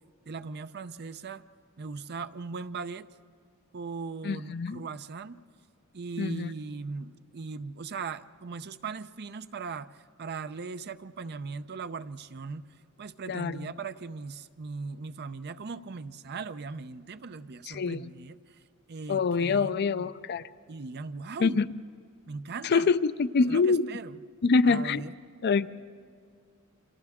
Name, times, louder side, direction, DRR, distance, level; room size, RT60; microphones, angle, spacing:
voice 1, 0.3-1.4 1.8-3.1 3.7-5.4 5.9-12.7 13.0-18.6 18.9-20.1 20.7-21.6 22.3-22.9 23.5-24.2 24.6-25.1, right 4 dB, 50° right, 12 dB, 0.6 m, -39 dB
voice 2, 4.2-4.8 6.2-6.5 13.3-13.7 17.7-18.1 19.1-20.4 21.4-21.7 22.6-23.9 24.4-25.1 25.4-25.7, left 4 dB, 50° left, 14 dB, 0.4 m, -25 dB
29.5 x 26.5 x 3.6 m, 2.2 s
head